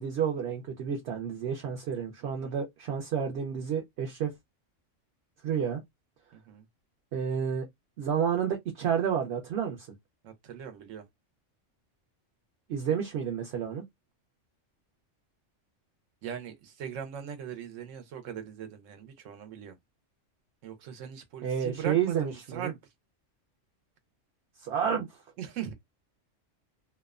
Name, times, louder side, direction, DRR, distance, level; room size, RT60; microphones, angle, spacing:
voice 1, 0.0-4.3 5.4-5.8 7.1-7.7 8.0-9.8 12.7-13.8 21.4-22.7 24.6-25.1, right 8 dB, 65° right, 0.8 m, -30 dB
voice 2, 2.2-2.5 6.3-6.6 10.2-11.1 16.2-19.8 20.6-22.8 25.4-25.7, right 8 dB, 85° right, 1.0 m, -40 dB
2.7 x 2.1 x 2.3 m
omnidirectional pair, 1.3 m